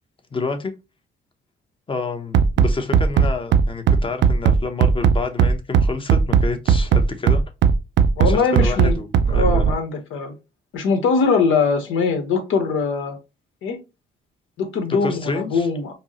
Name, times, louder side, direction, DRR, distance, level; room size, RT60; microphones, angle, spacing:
voice 1, 0.3-0.7 1.9-7.4 8.2-9.7 15.0-15.7, left 3 dB, 25° left, 0.8 m, -29 dB
Bass drum, 2.3-9.7, right 6 dB, 65° right, 0.5 m, -16 dB
voice 2, 8.2-8.9 9.3-10.3 10.7-13.2 13.6-13.8 14.6-15.9, left 5 dB, 85° left, 1.1 m, -21 dB
5.1 x 2.0 x 2.9 m
cardioid pair, 90°, 20 cm